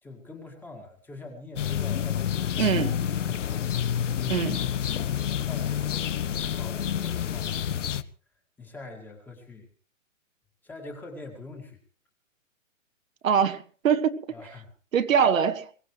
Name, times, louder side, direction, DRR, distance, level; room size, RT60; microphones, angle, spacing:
voice 1, 0.0-2.9 3.2-5.1 5.4-8.0 8.6-9.7 10.6-11.8 14.3-14.7, left 2 dB, 5° left, 2.1 m, -44 dB
sound 1, 1.6-8.0, left 9 dB, 65° left, 1.1 m, -28 dB
voice 2, 2.6-3.0 4.3-4.6 13.2-14.2 14.9-15.7, right 7 dB, 75° right, 1.7 m, -23 dB
23.0 x 17.5 x 3.2 m
hypercardioid pair, 170°, 40 cm